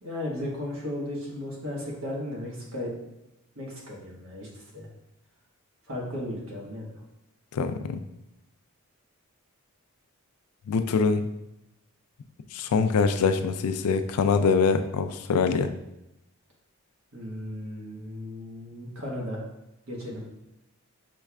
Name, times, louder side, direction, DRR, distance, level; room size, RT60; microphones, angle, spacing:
voice 1, 0.0-2.9 3.5-4.9 5.9-6.9 17.1-19.4 19.9-20.2, left 1 dB, 70° right, -3 dB, 1.3 m, -35 dB
voice 2, 7.5-8.0 10.7-11.3 12.5-15.7, left 5 dB, 85° left, 9 dB, 0.4 m, -24 dB
6.3 x 3.2 x 2.3 m, 0.87 s
head